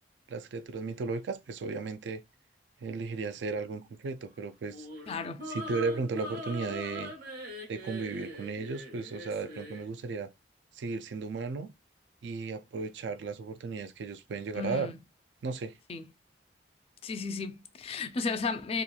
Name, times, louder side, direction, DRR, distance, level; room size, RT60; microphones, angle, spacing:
voice 1, 0.3-2.2 2.8-4.9 5.5-7.1 7.7-10.3 10.7-11.7 12.2-14.9 15.4-15.8, right 4 dB, 80° right, 0.4 m, -35 dB
sound 1, 4.6-9.9, equal, 55° right, 0.8 m, -42 dB
voice 2, 5.1-5.4 14.5-15.0 15.9-16.1 17.0-18.8, left 4 dB, 35° left, 0.3 m, -34 dB
2.9 x 2.3 x 2.3 m
head